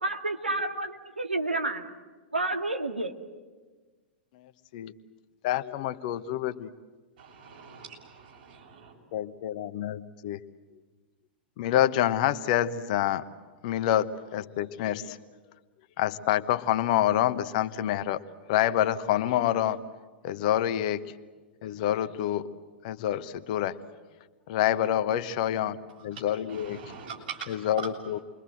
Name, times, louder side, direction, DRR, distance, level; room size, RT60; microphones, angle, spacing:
voice 1, 0.0-1.9 2.3-3.1, right 2 dB, 80° right, 4 dB, 1.9 m, -30 dB
voice 2, 5.4-6.7 9.1-10.4 11.6-13.2 13.6-15.2 16.0-18.2 18.5-19.8 20.2-21.0 21.6-22.5 22.8-23.8 24.5-25.8 26.0-26.8 27.5-28.2, left 12 dB, 45° left, 12 dB, 1.1 m, -27 dB
voice 3, 7.2-8.9 26.5-27.9, right 6 dB, 60° right, -1 dB, 7.4 m, -42 dB
28.5 x 23.5 x 7.9 m, 1.3 s
figure-of-eight pair, 100°, 6 cm